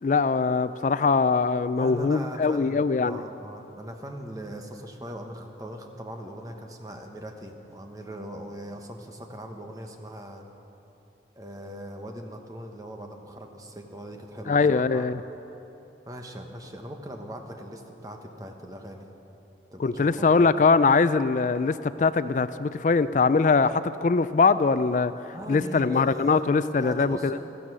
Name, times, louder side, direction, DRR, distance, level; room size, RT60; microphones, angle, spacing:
voice 1, 0.0-3.2 14.5-15.2 19.8-25.1 25.5-27.4, left 4 dB, 45° left, 14 dB, 0.3 m, -22 dB
voice 2, 1.7-10.4 11.4-15.1 16.0-19.1 19.7-20.4 25.3-27.4, equal, 20° right, 3 dB, 1.2 m, -40 dB
16.0 x 14.0 x 6.2 m, 2.9 s
head